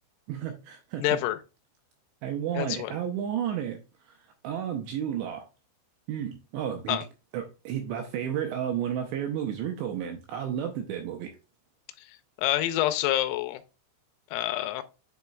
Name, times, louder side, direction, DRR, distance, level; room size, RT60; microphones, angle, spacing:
voice 1, 0.3-1.2 2.2-3.8 4.1-4.2 4.4-5.4 6.1-7.0 7.3-11.3, right 9 dB, 85° right, 2.5 m, -32 dB
voice 2, 1.0-1.4 2.5-3.0 6.9-7.0 12.4-13.6 14.3-14.8, left 14 dB, 85° left, 3.1 m, -27 dB
10.0 x 4.2 x 2.3 m
omnidirectional pair, 5.9 m